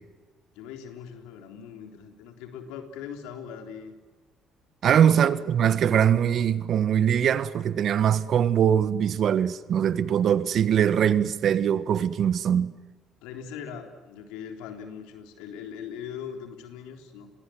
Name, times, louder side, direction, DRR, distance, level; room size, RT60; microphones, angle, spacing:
voice 1, 0.5-3.9 5.1-5.5 13.2-17.3, left 7 dB, 85° left, 3.7 m, -40 dB
voice 2, 4.8-12.7, right 9 dB, 60° right, 1.4 m, -22 dB
29.5 x 22.0 x 7.9 m
supercardioid pair, 70°, 0 cm